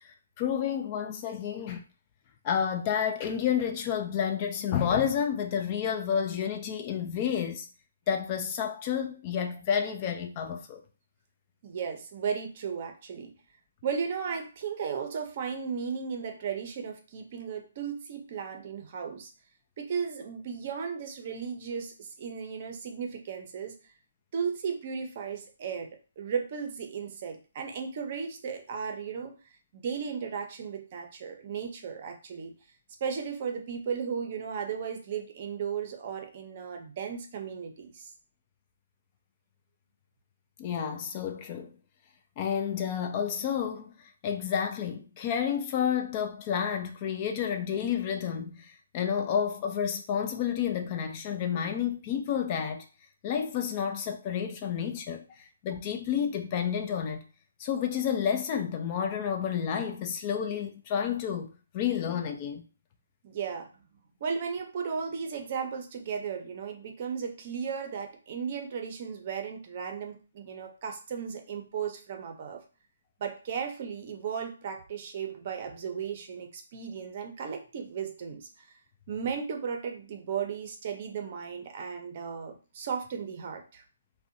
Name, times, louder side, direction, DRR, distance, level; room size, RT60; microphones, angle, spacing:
voice 1, 0.4-1.8 2.4-7.7 8.1-10.8 40.6-41.7 42.4-43.9 44.2-52.9 53.2-55.2 55.6-57.2 57.6-61.5 61.7-62.6, left 8 dB, 30° left, 0.3 m, -30 dB
voice 2, 11.6-13.3 13.8-19.3 19.8-23.9 24.3-25.9 26.2-29.4 29.7-32.5 33.0-38.1 63.2-63.7 64.2-72.6 73.2-78.7 79.1-83.8, right 6 dB, 40° right, 0.5 m, -35 dB
2.6 x 2.1 x 2.5 m
hypercardioid pair, 150°, 0 cm